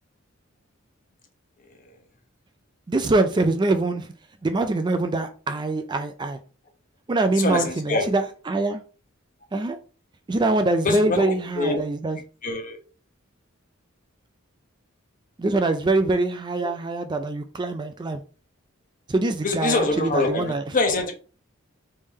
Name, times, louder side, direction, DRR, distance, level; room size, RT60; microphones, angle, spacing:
voice 1, 2.9-4.1 4.4-6.4 7.1-8.8 9.5-9.8 10.3-12.2 15.4-18.2 19.1-20.6, right 2 dB, 20° right, 0.3 m, -24 dB
voice 2, 7.3-8.1 10.8-11.8 12.4-12.8 16.6-16.7 19.4-21.1, left 3 dB, 40° left, 0.9 m, -25 dB
3.6 x 3.2 x 4.2 m
head